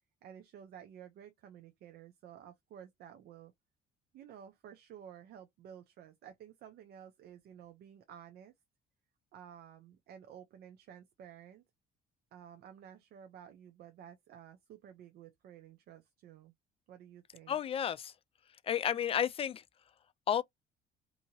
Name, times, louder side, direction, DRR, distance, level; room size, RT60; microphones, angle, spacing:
voice 1, 0.2-3.5 4.1-8.5 9.3-11.6 12.3-16.5 16.9-17.6, right 9 dB, 65° right, 0.6 m, -53 dB
voice 2, 17.5-18.1 18.6-19.6 20.3-20.4, left 9 dB, 35° left, 0.4 m, -31 dB
2.7 x 2.7 x 2.7 m
cardioid pair, 110°, 17 cm